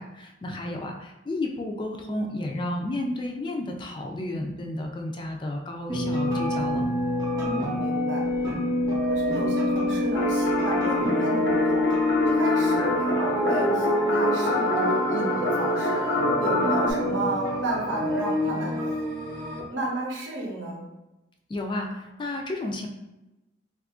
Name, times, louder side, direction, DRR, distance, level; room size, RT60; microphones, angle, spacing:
voice 1, 0.0-6.8 21.5-22.9, left 1 dB, 25° left, 2 dB, 0.3 m, -32 dB
sound 1, 5.9-19.6, left 1 dB, 20° right, 0.6 m, -26 dB
voice 2, 7.3-8.2 9.1-18.7 19.7-20.8, right 2 dB, 75° right, -1 dB, 0.8 m, -32 dB
sound 2, 10.1-16.9, left 1 dB, 90° left, 0.4 m, -27 dB
2.7 x 2.4 x 3.6 m, 1.0 s
head